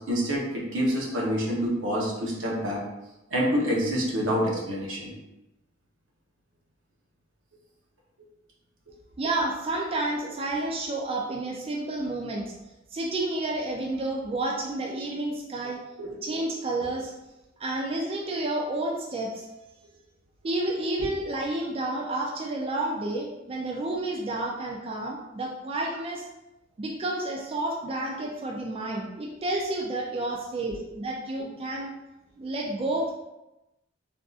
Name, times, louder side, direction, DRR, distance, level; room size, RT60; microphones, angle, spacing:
voice 1, 0.0-2.8 3.3-5.1 16.0-16.1 21.0-21.1 30.7-30.8, equal, 90° right, -3 dB, 0.9 m, -27 dB
voice 2, 9.2-12.5 12.9-15.8 16.2-17.1 17.6-19.5 20.4-26.3 26.8-31.9 32.4-33.1, right 2 dB, 30° right, -1 dB, 0.4 m, -30 dB
3.5 x 2.6 x 2.4 m, 0.96 s
head